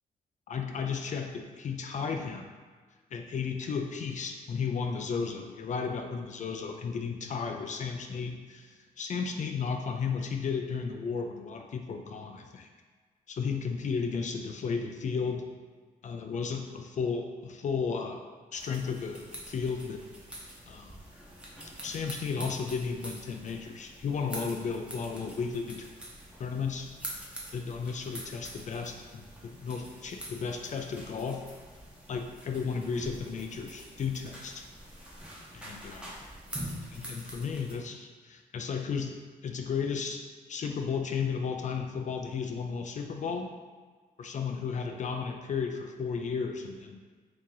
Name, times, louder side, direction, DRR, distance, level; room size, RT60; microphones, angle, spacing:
voice 1, 0.5-2.5 3.1-12.7 13.3-15.5 16.0-18.3 18.5-20.0 20.7-21.0 21.8-25.9 26.4-26.9 27.5-31.4 32.1-34.7 35.5-36.2 36.9-39.2 39.4-43.5 44.2-47.0, left 5 dB, 50° left, 4 dB, 0.4 m, -34 dB
sound 1, 18.5-37.8, right 1 dB, 5° right, 0.7 m, -45 dB
2.9 x 2.5 x 3.8 m, 1.5 s
cardioid pair, 65°, 16 cm